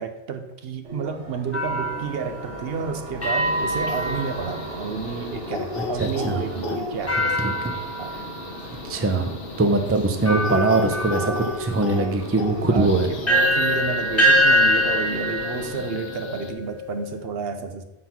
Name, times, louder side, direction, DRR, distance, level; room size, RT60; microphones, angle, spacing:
voice 1, 0.0-7.4 8.0-8.1 12.7-17.8, right 6 dB, 60° right, 7 dB, 0.8 m, -31 dB
sound 1, 0.8-15.8, right 1 dB, 90° right, 1.4 m, -39 dB
sound 2, 1.5-5.0 7.1-8.6 9.3-9.4 10.3-17.1, equal, 15° left, 1.3 m, -25 dB
sound 3, 3.2-16.5, left 4 dB, 55° left, 0.9 m, -35 dB
voice 2, 6.0-6.6 7.4-7.7 8.8-13.1, right 2 dB, 20° right, 6 dB, 0.4 m, -22 dB
7.4 x 4.1 x 5.8 m, 1.0 s
omnidirectional pair, 1.2 m